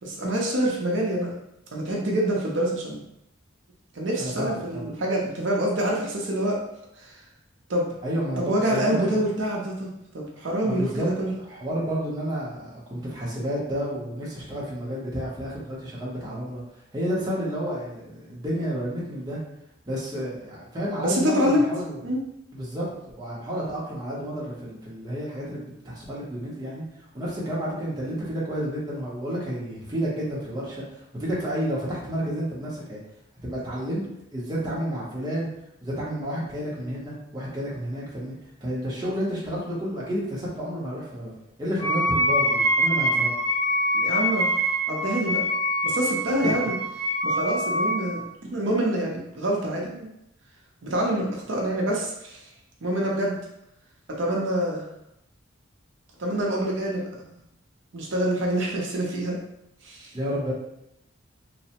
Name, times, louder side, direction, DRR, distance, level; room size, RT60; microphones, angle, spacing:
voice 1, 0.0-1.3 1.7-3.0 3.9-6.6 7.0-7.1 7.7-7.8 8.4-11.3 21.0-21.7 22.0-22.2 43.9-44.5 44.9-45.4 45.8-46.8 47.2-50.1 50.8-52.4 52.8-53.4 54.2-54.8 56.2-57.2 57.9-59.4 59.8-60.1, right 1 dB, 60° right, -2 dB, 0.5 m, -26 dB
voice 2, 4.2-4.8 8.0-9.2 10.6-16.6 16.9-19.4 19.9-22.0 22.5-22.9 23.1-26.8 27.1-33.0 33.4-34.0 34.3-35.5 35.8-38.3 38.6-43.3 46.4-46.5 60.1-60.5, equal, 20° right, -6 dB, 0.7 m, -30 dB
Wind instrument woodwind instrument, 41.8-48.1, equal, 20° left, 0.9 m, -24 dB
3.1 x 2.0 x 2.8 m, 0.82 s
head